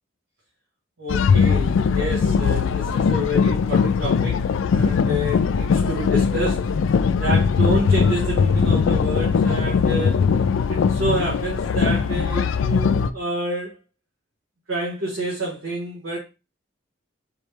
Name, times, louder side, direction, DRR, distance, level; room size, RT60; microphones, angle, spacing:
voice 1, 1.0-4.4 4.7-6.7 7.2-10.2 10.7-13.7 14.7-16.2, right 1 dB, 85° right, 1.5 m, -28 dB
sound 1, 1.1-13.1, left 5 dB, 75° left, 0.3 m, -20 dB
4.3 x 3.1 x 3.3 m
head